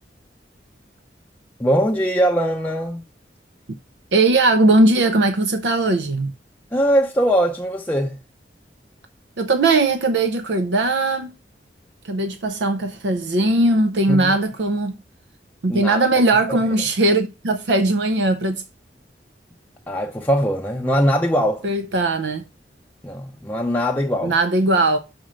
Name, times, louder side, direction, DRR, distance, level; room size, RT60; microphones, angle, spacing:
voice 1, 1.6-3.1 6.7-8.2 14.1-14.3 15.7-16.1 16.5-16.6 19.9-21.7 23.0-24.3, equal, 10° left, 0.5 m, -21 dB
voice 2, 4.1-6.3 9.4-11.3 12.0-15.0 15.6-18.6 21.6-22.4 24.2-25.0, right 2 dB, 80° right, 0.6 m, -19 dB
6.2 x 4.3 x 6.2 m
head